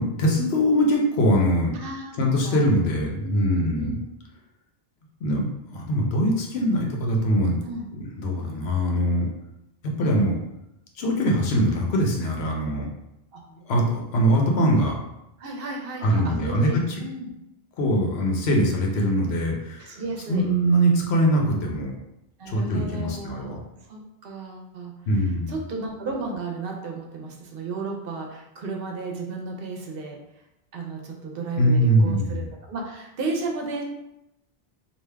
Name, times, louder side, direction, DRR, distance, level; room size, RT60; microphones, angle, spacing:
voice 1, 0.0-1.7 2.2-3.9 5.2-7.6 7.9-9.3 10.0-10.4 11.0-12.9 13.5-14.9 16.0-17.0 17.8-20.0 20.3-21.9 22.5-23.6 25.1-25.5 31.6-32.4, equal, 85° left, 0 dB, 1.0 m, -22 dB
voice 2, 1.7-2.1 2.4-2.7 3.2-4.0 7.6-7.9 13.3-13.4 15.4-17.3 19.8-20.5 22.4-23.6 23.9-25.0 25.5-30.2 30.7-33.8, right 3 dB, 65° right, 1 dB, 0.8 m, -33 dB
3.5 x 2.5 x 3.3 m, 0.87 s
omnidirectional pair, 1.0 m